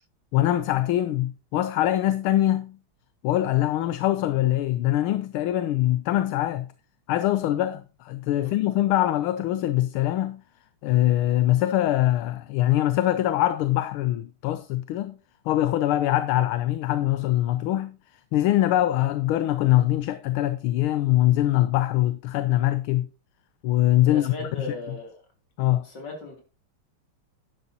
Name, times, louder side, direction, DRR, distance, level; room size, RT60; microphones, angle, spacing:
voice 1, 0.3-2.8 3.2-6.7 7.1-10.4 10.8-15.1 15.4-23.1 23.6-24.7 25.6-25.9, left 14 dB, 80° left, 1.5 m, -23 dB
voice 2, 24.0-25.2 25.8-26.4, left 1 dB, 50° left, 3.7 m, -37 dB
11.0 x 11.0 x 2.8 m
omnidirectional pair, 2.4 m